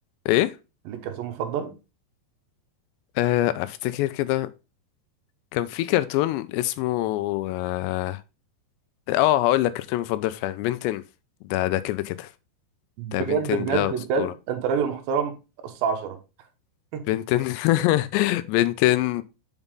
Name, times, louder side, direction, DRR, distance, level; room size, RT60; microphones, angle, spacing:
voice 1, 0.9-1.7 13.0-15.4 15.6-16.2 16.9-17.2, right 6 dB, 70° right, 2.5 m, -27 dB
voice 2, 3.2-4.5 5.5-8.2 9.1-11.0 11.5-12.3 13.1-14.3 17.1-19.2, left 15 dB, 85° left, 2.7 m, -24 dB
7.1 x 5.4 x 3.6 m
omnidirectional pair, 5.3 m